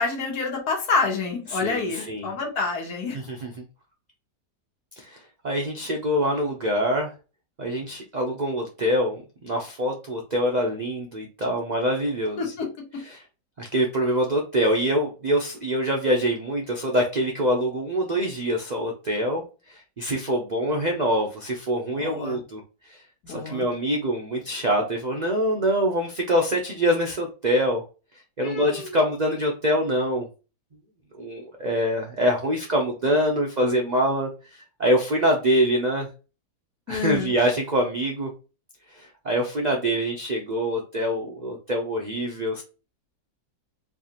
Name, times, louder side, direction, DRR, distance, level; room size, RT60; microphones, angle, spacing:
voice 1, 0.0-3.2 12.4-13.0 21.9-22.4 23.2-23.7 28.4-29.0 36.9-37.3, left 4 dB, 65° left, 0 dB, 1.7 m, -28 dB
voice 2, 1.5-2.3 3.1-3.7 5.0-5.2 5.4-7.1 7.6-12.5 13.0-13.2 13.6-22.6 22.9-23.0 23.3-27.8 28.4-30.3 31.2-36.1 36.9-38.3 38.9-42.6, equal, 65° right, 1 dB, 0.4 m, -25 dB
4.8 x 2.4 x 2.8 m, 0.32 s
omnidirectional pair, 1.8 m